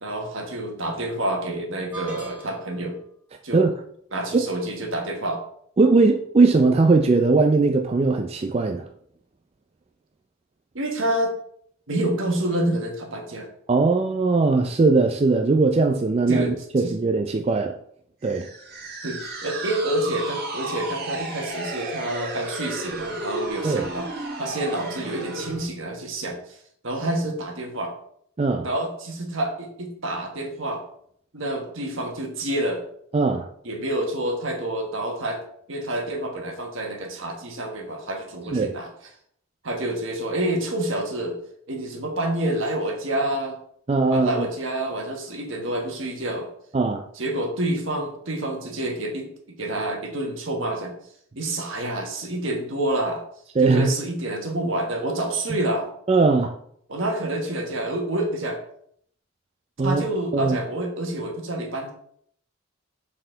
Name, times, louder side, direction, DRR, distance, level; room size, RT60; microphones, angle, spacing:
voice 1, 0.0-3.0 3.4-3.7 4.1-5.4 10.7-11.3 11.9-13.5 16.3-16.9 19.0-24.1 24.4-26.6 26.8-27.9 28.6-30.8 31.3-32.8 33.6-35.4 35.7-38.9 39.6-41.4 41.7-43.5 44.1-46.5 47.1-49.3 49.6-50.9 51.3-53.2 53.6-55.9 56.9-58.6 59.8-61.9, right 1 dB, 70° right, 2 dB, 1.4 m, -28 dB
sound 1, 1.9-2.9, right 3 dB, 10° right, 1.9 m, -40 dB
voice 2, 5.8-8.9 13.7-17.8 18.2-18.5 23.6-23.9 28.4-28.7 33.1-33.5 38.5-38.7 43.9-44.5 46.7-47.0 53.6-53.9 56.1-56.5 59.8-60.0 60.3-60.6, right 3 dB, 30° right, 4 dB, 0.3 m, -20 dB
sound 2, 18.2-25.7, right 2 dB, 50° right, 1.5 m, -33 dB
6.5 x 4.2 x 3.9 m, 0.67 s
head